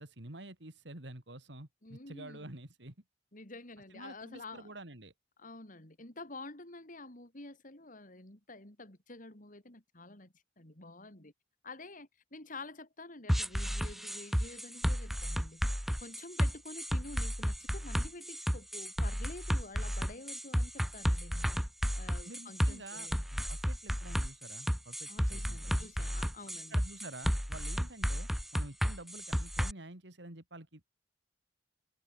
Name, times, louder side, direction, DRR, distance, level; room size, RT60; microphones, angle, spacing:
voice 1, 0.0-2.9 3.9-5.1 22.2-25.9 26.7-31.0, right 2 dB, 85° right, 3.4 m, -49 dB
voice 2, 1.8-2.5 3.3-4.7 5.4-11.3 11.6-21.6 21.9-23.2 25.1-26.8, left 2 dB, 50° left, 4.1 m, -49 dB
sound 1, 13.3-29.7, equal, ahead, 1.9 m, -32 dB
open air
head